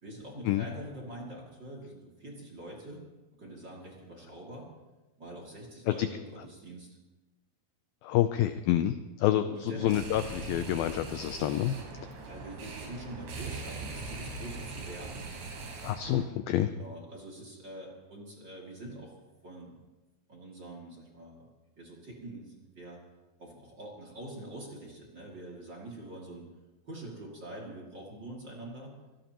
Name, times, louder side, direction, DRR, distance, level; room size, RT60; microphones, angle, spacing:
voice 1, 0.0-3.0 3.3-4.7 5.2-7.0 9.6-10.0 12.3-15.3 16.7-19.1 19.4-19.8 20.3-21.5 21.8-23.0 23.4-26.5 26.9-29.0, right 1 dB, 30° right, -2 dB, 2.7 m, -45 dB
voice 2, 8.0-11.8 15.8-16.7, left 12 dB, 85° left, 9 dB, 2.1 m, -28 dB
sound 1, 9.8-16.2, right 3 dB, 90° right, 5.0 m, -41 dB
25.0 x 18.5 x 3.0 m, 1.1 s
omnidirectional pair, 4.9 m